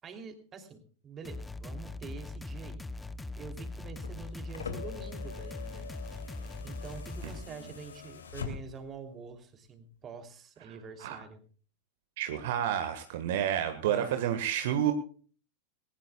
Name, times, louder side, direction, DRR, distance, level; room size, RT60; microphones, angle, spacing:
voice 1, 0.0-3.0 3.4-5.9 6.6-11.4 13.8-14.4, right 5 dB, 25° right, 7 dB, 3.1 m, -46 dB
sound 1, 1.2-7.4, left 2 dB, 10° left, 0.8 m, -41 dB
sound 2, 3.8-9.0 10.2-10.3, left 6 dB, 70° left, 2.6 m, -44 dB
voice 2, 12.2-14.9, right 10 dB, 55° right, 8 dB, 1.6 m, -29 dB
20.5 x 19.5 x 2.4 m, 0.41 s
figure-of-eight pair, 90°, 0 cm